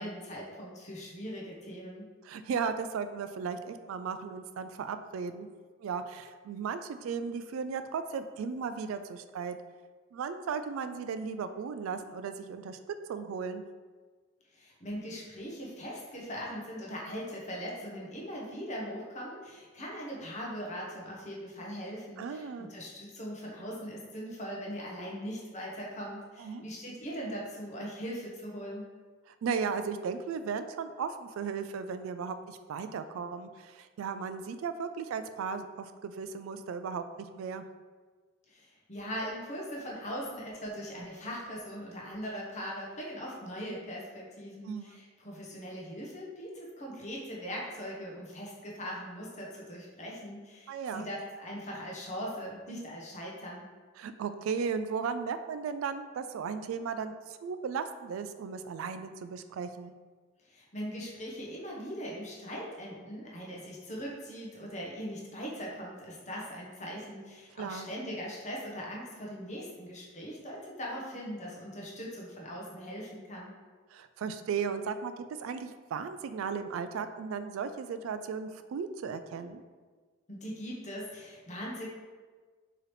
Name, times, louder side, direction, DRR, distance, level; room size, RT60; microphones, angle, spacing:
voice 1, 0.0-2.1 14.5-28.8 38.5-53.7 60.4-73.5 80.3-81.9, equal, 35° left, -3 dB, 0.9 m, -40 dB
voice 2, 2.2-5.5 5.8-9.6 10.1-12.8 13.1-13.6 22.2-22.7 26.4-26.6 29.3-37.6 44.6-45.0 50.7-51.1 54.0-59.9 67.6-67.9 73.9-79.6, right 6 dB, 90° right, 11 dB, 0.3 m, -36 dB
4.7 x 3.0 x 3.2 m, 1.5 s
head